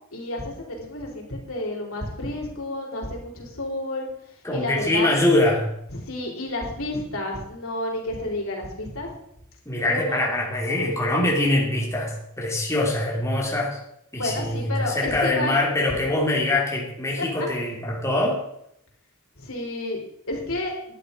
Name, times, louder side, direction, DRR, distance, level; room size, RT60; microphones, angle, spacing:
voice 1, 0.1-4.1 4.5-5.2 5.9-9.1 9.8-10.2 14.1-15.6 19.4-20.0 20.3-20.7, left 1 dB, 80° left, -1 dB, 4.0 m, -30 dB
voice 2, 4.4-5.6 9.7-13.8 14.1-18.4, left 1 dB, 15° left, -3 dB, 2.8 m, -23 dB
11.5 x 10.5 x 5.4 m, 0.76 s
head